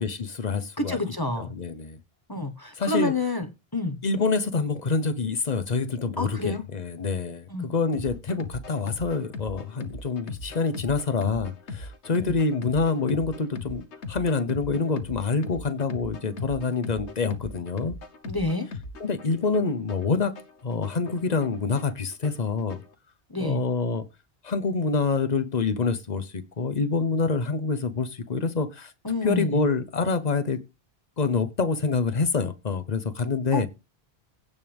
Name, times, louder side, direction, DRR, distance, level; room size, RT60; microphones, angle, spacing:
voice 1, 0.0-1.0 1.4-2.0 2.8-3.1 4.0-18.0 19.0-20.3 20.6-22.8 23.4-24.0 24.4-28.9 29.2-30.6 31.2-33.7, left 4 dB, 40° left, 1.0 m, -26 dB
voice 2, 0.8-1.5 2.3-3.5 3.7-4.0 6.2-6.6 7.5-7.7 12.1-12.3 18.2-18.7 23.3-23.6 29.0-29.6 33.5-33.7, left 2 dB, 20° left, 1.3 m, -28 dB
sound 1, 7.9-22.9, left 3 dB, 85° left, 1.4 m, -40 dB
16.5 x 5.5 x 3.5 m
omnidirectional pair, 1.1 m